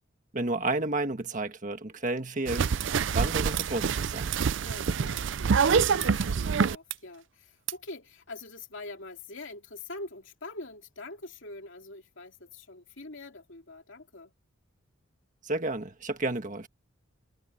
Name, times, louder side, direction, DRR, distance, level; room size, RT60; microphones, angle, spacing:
voice 1, 0.3-2.8 3.1-4.3 15.4-16.7, right 2 dB, 35° right, 1.7 m, -31 dB
sound 1, 2.5-6.9 7.7-7.8, right 6 dB, 55° right, 0.4 m, -26 dB
voice 2, 4.6-14.3, left 2 dB, 60° left, 2.7 m, -44 dB
head